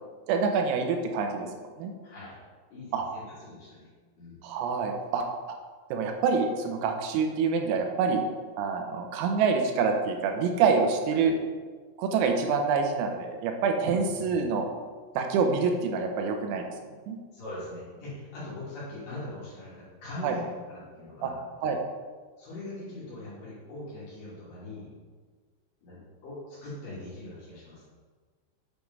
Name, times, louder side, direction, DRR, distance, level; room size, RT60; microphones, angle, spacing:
voice 1, 0.3-1.5 1.8-1.9 2.9-3.1 4.4-5.2 5.9-8.2 8.6-11.4 12.0-14.7 15.2-16.7 17.1-17.2 20.2-20.4 21.2-21.3 21.6-21.8, right 5 dB, 85° right, 3 dB, 3.5 m, -26 dB
voice 2, 2.0-2.4 2.7-3.9 4.2-4.4 11.1-11.3 13.8-14.0 17.3-21.4 22.4-24.9 25.8-27.8, left 2 dB, 50° left, -9 dB, 3.4 m, -41 dB
9.2 x 4.7 x 5.3 m, 1.5 s
omnidirectional pair, 6.0 m